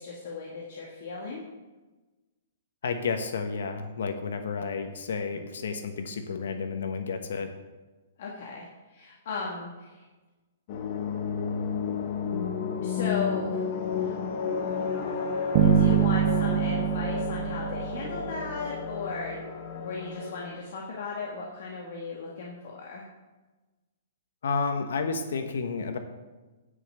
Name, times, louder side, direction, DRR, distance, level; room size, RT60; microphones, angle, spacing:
voice 1, 0.0-1.4 8.2-10.0 12.8-13.7 14.0-14.2 15.6-19.4 19.7-23.0, left 4 dB, 60° left, -2 dB, 1.8 m, -36 dB
voice 2, 2.8-7.5 24.4-26.0, left 5 dB, 80° left, 7 dB, 1.1 m, -31 dB
sound 1, 10.7-20.5, left 6 dB, 40° left, 1.3 m, -32 dB
Bass guitar, 15.5-18.6, right 8 dB, 45° right, 0.9 m, -24 dB
10.0 x 5.5 x 8.0 m, 1.2 s
hypercardioid pair, 160°, 0 cm